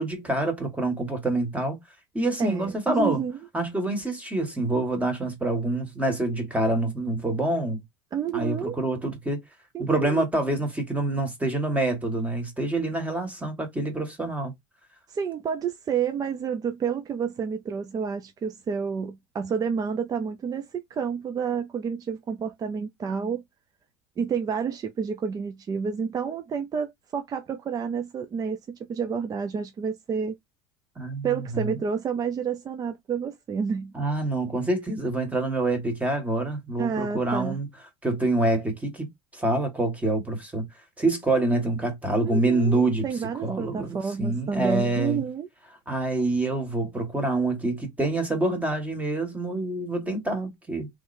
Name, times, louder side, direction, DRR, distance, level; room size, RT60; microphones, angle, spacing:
voice 1, 0.0-1.8 2.1-3.2 3.5-7.8 8.3-9.4 9.8-14.5 31.0-31.7 33.9-37.7 38.0-40.7 41.0-43.1 43.4-45.2 45.9-50.9, right 2 dB, 10° right, 1.7 m, -26 dB
voice 2, 2.4-3.4 8.1-8.8 9.7-10.3 15.1-23.4 24.2-30.3 31.2-33.9 36.8-37.6 42.2-45.5, right 6 dB, 30° right, 0.6 m, -29 dB
3.3 x 3.3 x 2.7 m
supercardioid pair, 105°, 13 cm